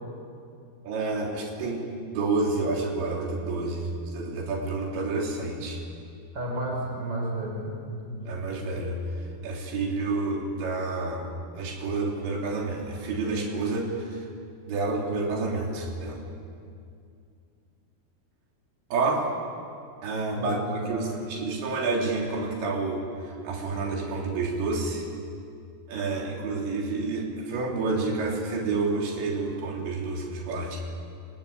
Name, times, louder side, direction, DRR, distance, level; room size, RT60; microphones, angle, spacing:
voice 1, 0.8-5.8 8.3-9.0 9.4-11.3 11.6-14.3 14.7-16.2 18.9-19.2 20.0-25.1 25.9-30.8, right 3 dB, 90° right, 0 dB, 5.6 m, -29 dB
voice 2, 6.3-7.8 8.0-8.4 20.4-21.2, right 1 dB, 25° right, 0 dB, 5.7 m, -32 dB
29.5 x 19.5 x 8.8 m, 2.4 s
omnidirectional pair, 5.0 m